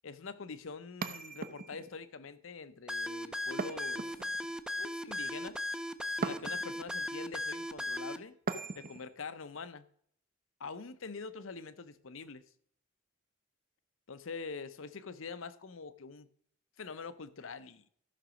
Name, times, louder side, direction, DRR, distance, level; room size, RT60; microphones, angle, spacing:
voice 1, 0.0-4.2 4.8-5.6 6.2-8.4 8.7-9.8 10.6-12.4 14.1-16.3 16.8-17.9, left 4 dB, 75° left, 0.7 m, -45 dB
sound 1, 1.0-2.0 3.6-4.6 6.2-6.8 8.5-9.1, right 4 dB, 45° right, 0.8 m, -39 dB
sound 2, 2.9-8.2, left 1 dB, 5° right, 0.5 m, -37 dB
14.0 x 6.0 x 5.1 m
head